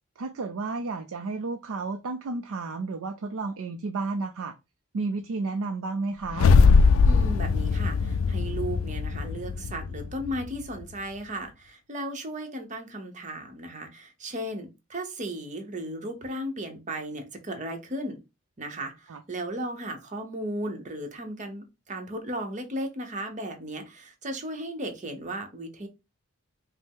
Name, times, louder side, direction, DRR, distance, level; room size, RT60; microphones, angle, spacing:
voice 1, 0.2-4.5 4.9-6.5 19.1-19.2, right 3 dB, 70° right, 0.4 m, -32 dB
sound 1, 6.3-10.6, left 4 dB, 70° left, 0.3 m, -21 dB
voice 2, 7.0-18.2 18.6-25.9, right 1 dB, 35° right, 0.8 m, -35 dB
5.2 x 2.0 x 3.6 m
head